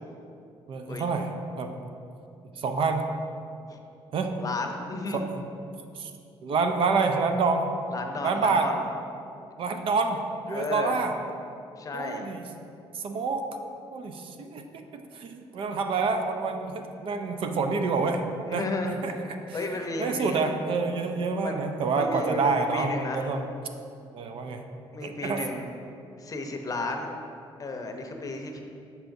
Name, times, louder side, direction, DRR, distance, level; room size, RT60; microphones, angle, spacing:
voice 1, 0.7-1.3 1.6-1.7 2.6-3.1 4.1-4.3 5.1-5.5 5.9-6.1 6.4-7.7 8.2-8.7 9.6-10.2 10.5-11.1 11.9-12.5 12.9-13.5 13.9-18.2 18.5-19.7 20.0-23.5 24.1-24.7 25.0-25.5, right 4 dB, 60° right, 5 dB, 0.5 m, -28 dB
voice 2, 4.4-5.3 7.9-8.8 10.5-11.0 11.8-12.3 18.5-19.0 19.5-20.5 21.4-21.6 21.9-23.3 24.9-25.6 26.2-27.1 27.6-28.6, left 2 dB, 35° left, 4 dB, 0.7 m, -33 dB
6.7 x 5.7 x 2.6 m, 2.6 s
supercardioid pair, 75°, 11 cm